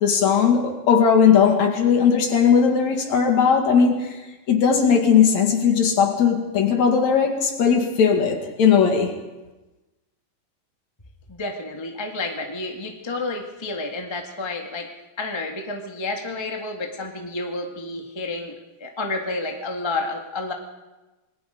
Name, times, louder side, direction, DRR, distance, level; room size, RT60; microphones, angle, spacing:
voice 1, 0.0-4.1 4.5-9.1, left 6 dB, 55° left, 3 dB, 3.0 m, -18 dB
voice 2, 11.3-14.9 15.2-18.5 18.8-20.5, left 2 dB, 15° left, 2 dB, 0.8 m, -30 dB
27.5 x 20.5 x 5.2 m, 1.1 s
omnidirectional pair, 4.3 m